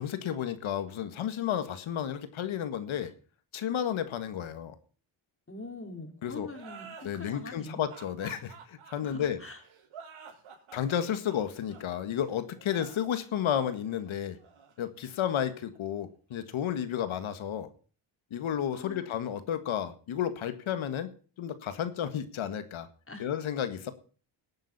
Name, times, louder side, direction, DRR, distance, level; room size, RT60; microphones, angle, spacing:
voice 1, 0.0-3.1 3.5-4.8 6.2-6.5 7.0-9.4 10.7-14.4 14.8-17.7 18.3-21.1 21.4-22.9 23.2-23.9, left 9 dB, 75° left, 11 dB, 1.8 m, -32 dB
voice 2, 5.5-7.8 9.0-9.6 18.7-19.2 23.1-23.3, left 2 dB, 25° left, 4 dB, 4.4 m, -44 dB
sound 1, 6.5-15.8, right 6 dB, 80° right, 4.4 m, -51 dB
18.0 x 9.0 x 4.2 m, 0.39 s
cardioid pair, 75°, 48 cm